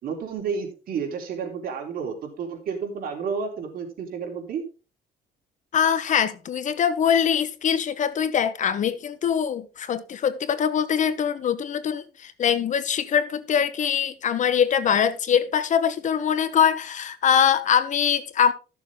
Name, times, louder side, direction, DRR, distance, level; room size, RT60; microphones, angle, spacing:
voice 1, 0.0-4.6, right 6 dB, 60° right, 3.5 m, -31 dB
voice 2, 5.7-18.5, left 8 dB, 45° left, 0.9 m, -23 dB
13.5 x 7.1 x 3.6 m
cardioid pair, 110°, 17 cm